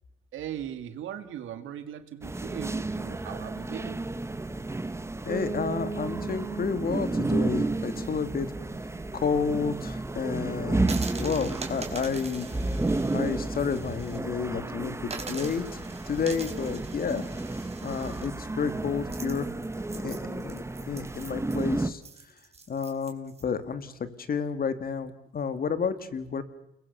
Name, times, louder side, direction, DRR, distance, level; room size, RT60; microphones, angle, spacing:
voice 1, 0.3-4.0, right 10 dB, 80° right, 9 dB, 2.3 m, -39 dB
sound 1, 2.2-21.9, right 2 dB, 15° right, 1.2 m, -32 dB
voice 2, 5.2-8.5 9.1-12.5 13.1-17.3 17.8-19.5 20.0-22.0 22.7-23.9 24.2-26.4, left 6 dB, 50° left, 11 dB, 2.5 m, -31 dB
Piano, 5.3-11.0, right 4 dB, 25° left, 6.5 m, -39 dB
sound 2, 10.8-14.2 14.5-14.6 15.0-23.4, right 4 dB, 30° right, 4.6 m, -43 dB
29.5 x 21.0 x 7.1 m, 0.85 s
cardioid pair, 90°, 20 cm